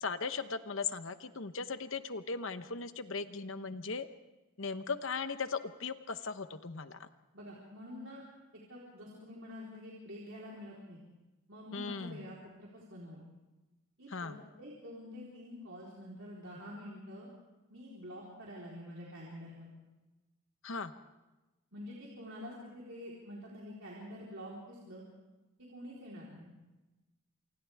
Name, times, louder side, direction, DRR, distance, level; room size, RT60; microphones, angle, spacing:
voice 1, 0.0-4.1 4.6-7.1 11.7-12.3 14.1-14.4 20.6-20.9, left 4 dB, 65° left, 10 dB, 1.0 m, -38 dB
voice 2, 7.3-8.2 8.7-11.0 11.5-13.2 14.0-17.3 17.7-19.7 21.7-25.0 25.6-26.5, left 1 dB, 65° right, -5 dB, 4.0 m, -47 dB
28.0 x 27.0 x 3.6 m, 1.1 s
head